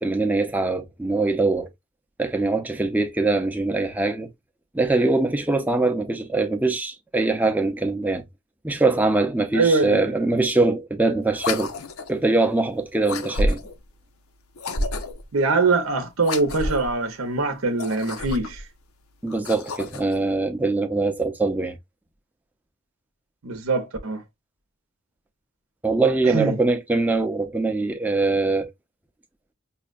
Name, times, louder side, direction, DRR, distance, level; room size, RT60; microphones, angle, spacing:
voice 1, 0.0-1.7 2.2-4.3 4.7-8.3 8.6-11.7 12.1-13.6 19.2-21.8 25.8-28.7, right 3 dB, 10° right, 0.5 m, -22 dB
voice 2, 9.5-10.0 10.4-10.5 15.3-18.6 23.4-24.2 26.2-26.6, right 3 dB, 80° right, 0.7 m, -23 dB
sound 1, 11.3-12.2 13.0-13.8 14.6-15.3 16.2-16.9 17.7-18.6 19.3-20.2, left 1 dB, 85° left, 0.7 m, -29 dB
5.5 x 2.1 x 2.3 m
head